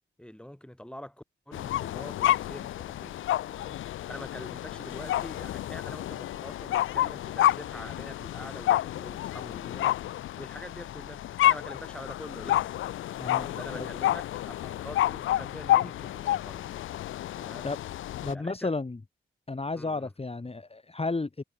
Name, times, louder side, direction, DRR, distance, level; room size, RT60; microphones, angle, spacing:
voice 1, 0.2-3.2 3.5-3.8 4.1-10.0 10.4-12.8 13.2-16.7 17.3-17.7 18.3-18.7 19.7-20.1, equal, 5° left, 4.3 m, -45 dB
sound 1, 1.5-18.3, left 13 dB, 80° left, 0.4 m, -29 dB
voice 2, 18.2-19.0 19.5-21.4, left 3 dB, 30° left, 2.8 m, -32 dB
cardioid pair, 55°, 20 cm